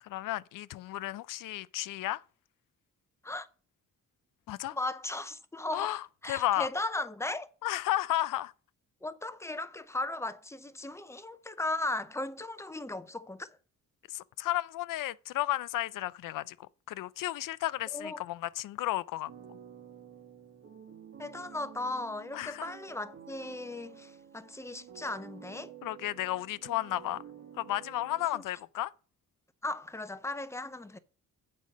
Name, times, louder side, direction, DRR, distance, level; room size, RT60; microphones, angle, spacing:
voice 1, 0.0-2.2 4.5-4.8 5.7-6.7 7.6-8.5 14.1-19.3 22.3-22.7 25.8-27.2 27.6-28.9, left 15 dB, 85° left, 0.5 m, -33 dB
voice 2, 4.7-5.9 6.2-7.5 9.0-13.5 17.9-18.2 21.2-25.7 28.3-28.4 29.6-31.0, left 2 dB, 10° left, 0.5 m, -37 dB
sound 1, 19.3-28.3, right 8 dB, 50° right, 1.3 m, -51 dB
8.3 x 5.4 x 6.1 m
wide cardioid pair, 160°, 32 cm